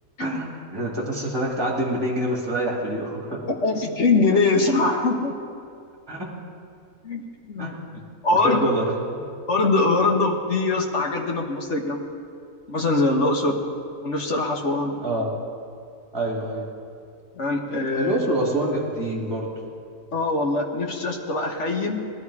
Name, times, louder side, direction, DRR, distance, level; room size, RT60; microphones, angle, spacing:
voice 1, 0.2-3.4 6.1-6.3 7.6-7.7 8.4-9.3 15.0-15.3 16.1-16.7 17.9-19.5, right 1 dB, 15° right, -2 dB, 2.2 m, -26 dB
voice 2, 3.5-5.3 7.0-7.2 7.5-7.7 8.2-8.7 9.5-12.1 12.7-13.6 14.0-15.0 17.3-18.2 20.1-22.0, left 3 dB, 50° left, 3 dB, 1.5 m, -22 dB
19.5 x 12.5 x 4.8 m, 2.4 s
omnidirectional pair, 1.7 m